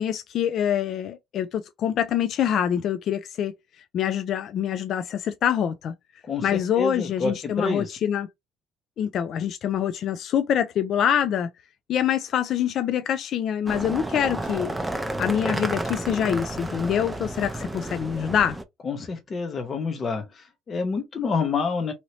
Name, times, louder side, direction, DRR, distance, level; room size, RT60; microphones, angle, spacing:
voice 1, 0.0-3.5 3.9-5.9 6.4-8.3 9.0-11.5 11.9-14.8 15.2-18.6, left 9 dB, 60° left, 0.3 m, -25 dB
voice 2, 6.8-8.0 18.8-21.9, left 4 dB, 35° left, 0.7 m, -28 dB
sound 1, 13.7-18.6, right 1 dB, 10° right, 0.5 m, -31 dB
2.8 x 2.6 x 3.1 m
cardioid pair, 115°, 0 cm